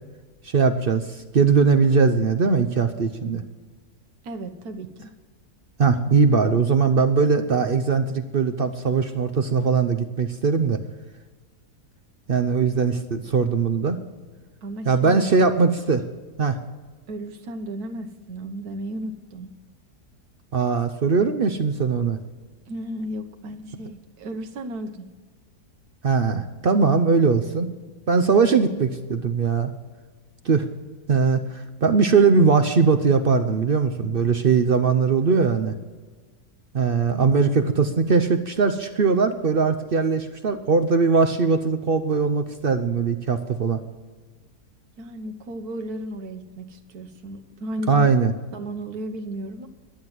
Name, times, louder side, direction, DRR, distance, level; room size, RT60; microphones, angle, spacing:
voice 1, 0.5-1.1 1.3-3.4 5.8-10.8 12.3-14.0 14.9-16.0 16.4-16.6 20.5-22.2 26.0-27.7 28.1-29.7 30.4-30.7 31.1-35.7 36.7-43.8 47.9-48.3, right 5 dB, 55° right, 8 dB, 0.6 m, -20 dB
voice 2, 4.2-5.1 14.6-15.3 17.1-19.5 22.7-25.1 45.0-48.1 48.5-49.7, right 1 dB, 70° right, 6 dB, 1.6 m, -34 dB
12.0 x 7.4 x 7.9 m, 1.3 s
omnidirectional pair, 1.7 m